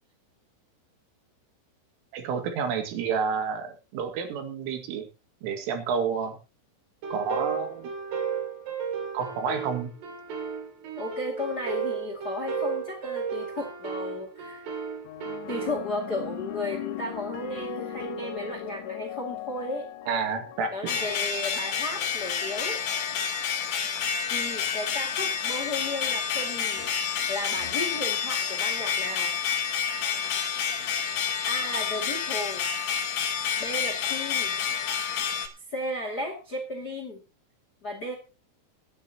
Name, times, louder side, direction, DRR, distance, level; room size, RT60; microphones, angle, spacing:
voice 1, 2.1-5.1 5.4-6.4 7.1-7.9 9.1-9.9 20.1-21.0, right 6 dB, 90° right, 5 dB, 4.6 m, -30 dB
sound 1, 7.0-15.8, right 6 dB, 65° right, 4.5 m, -34 dB
voice 2, 11.0-14.7 15.5-19.8 20.7-22.8 24.3-26.8 27.3-29.3 31.4-32.7 33.6-34.6 35.7-37.2 37.8-38.1, left 1 dB, 35° left, 3 dB, 1.6 m, -34 dB
sound 2, 15.1-23.6 24.5-24.9, left 9 dB, 80° left, 3.5 m, -40 dB
sound 3, 20.9-35.5, left 7 dB, 60° left, 2.3 m, -29 dB
25.5 x 9.2 x 2.9 m, 0.30 s
omnidirectional pair, 5.5 m